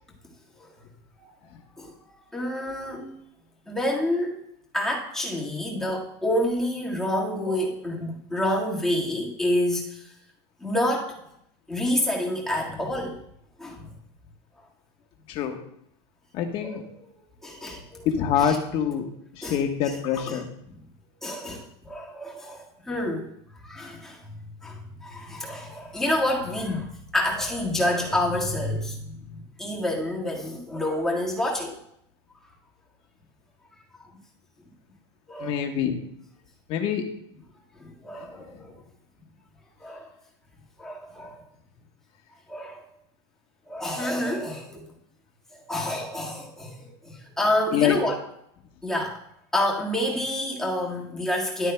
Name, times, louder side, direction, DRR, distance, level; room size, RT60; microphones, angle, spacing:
voice 1, 2.3-3.1 3.7-4.4 4.7-10.1 10.6-11.2 11.7-13.2 13.6-13.9 16.6-16.8 17.4-18.1 18.4-18.6 19.4-19.6 20.2-20.4 21.2-23.3 23.6-24.3 24.6-31.8 34.0-34.1 35.3-35.6 37.8-38.8 39.8-40.1 40.8-41.4 42.5-42.8 43.7-44.8 45.5-48.2 48.8-49.2 49.5-51.7, left 1 dB, 5° left, -4 dB, 1.7 m, -28 dB
voice 2, 15.3-15.6 16.3-16.8 18.0-19.1 19.4-20.5 35.4-36.0 36.7-37.1 38.1-38.3 47.7-48.0, left 8 dB, 40° left, 5 dB, 1.2 m, -25 dB
13.0 x 11.0 x 2.2 m, 0.73 s
supercardioid pair, 160°, 14 cm